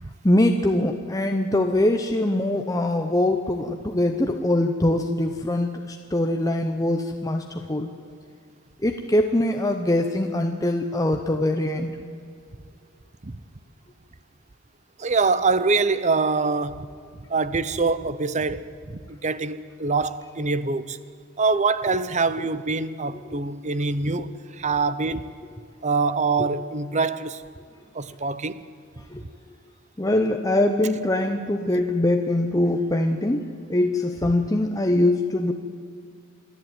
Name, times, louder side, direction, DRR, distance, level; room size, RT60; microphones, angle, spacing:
voice 1, 0.2-7.9 8.8-12.0 29.1-29.2 30.0-33.4 33.7-35.5, left 1 dB, 15° left, 0.7 m, -23 dB
voice 2, 15.0-16.9 17.3-21.0 21.4-25.2 25.8-27.4 27.9-28.6, right 4 dB, 30° right, 0.7 m, -24 dB
27.0 x 11.0 x 9.1 m
head